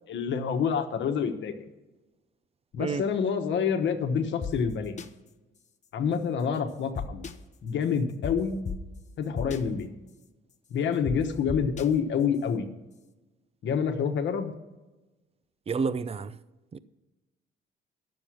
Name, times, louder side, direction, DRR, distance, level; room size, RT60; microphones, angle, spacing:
voice 1, 0.1-1.5 2.7-5.0 5.9-7.2 7.6-8.6 9.2-9.9 10.7-12.7 13.6-14.5, left 6 dB, 70° left, 1.2 m, -27 dB
sound 1, 4.4-4.5 5.0-5.1 7.0-7.3 8.2-8.3 8.7-8.8 9.4-9.6 11.1-11.2 11.5-11.8, left 6 dB, 35° left, 0.8 m, -32 dB
voice 2, 15.7-16.3 16.7-16.8, right 5 dB, 30° right, 0.5 m, -29 dB
9.9 x 7.0 x 6.1 m
cardioid pair, 90°, 20 cm